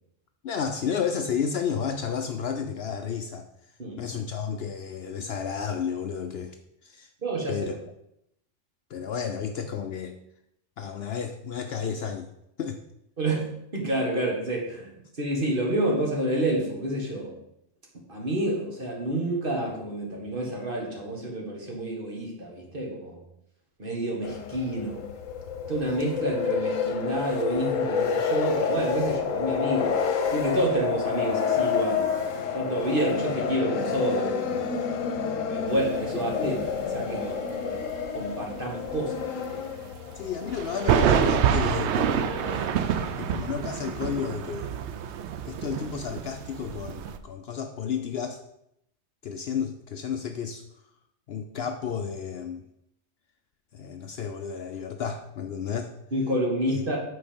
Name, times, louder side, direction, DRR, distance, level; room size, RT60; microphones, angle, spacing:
voice 1, 0.4-3.5 4.0-6.6 6.8-7.1 7.5-7.7 8.9-10.2 10.8-12.3 12.6-12.8 36.4-36.6 40.2-42.1 43.2-44.7 45.5-48.4 49.2-50.6 51.3-52.6 53.7-55.9, left 7 dB, 65° left, 6 dB, 0.7 m, -32 dB
voice 2, 7.2-7.6 13.2-13.5 13.7-17.4 18.1-23.2 23.8-25.0 25.7-30.0 30.3-32.1 32.5-34.7 35.5-37.8 38.1-39.6 56.1-57.0, right 1 dB, 45° right, -1 dB, 1.9 m, -29 dB
sound 1, 24.2-43.3, left 6 dB, 90° left, 1.2 m, -29 dB
sound 2, 35.7-37.4 37.6-38.1 38.3-38.4 38.9-39.0 40.4-47.2, right 8 dB, 70° right, 0.8 m, -27 dB
7.8 x 4.2 x 5.1 m, 0.78 s
omnidirectional pair, 1.3 m